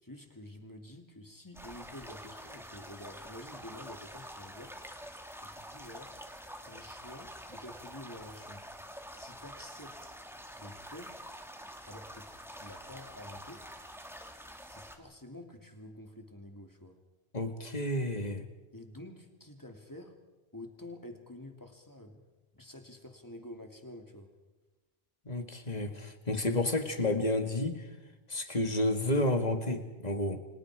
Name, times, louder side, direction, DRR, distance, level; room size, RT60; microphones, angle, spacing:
voice 1, 0.0-4.8 5.4-6.2 6.6-8.6 9.1-10.2 10.6-11.2 11.9-13.6 14.6-17.0 18.7-20.2 20.5-22.2 22.5-24.3, left 1 dB, 20° left, 4 dB, 2.7 m, -49 dB
sound 1, 1.5-15.0, equal, ahead, 2.1 m, -47 dB
voice 2, 17.3-18.5 25.3-27.9 28.3-30.4, left 1 dB, 40° left, 7 dB, 2.1 m, -31 dB
30.0 x 25.5 x 4.9 m, 1.1 s
omnidirectional pair, 1.1 m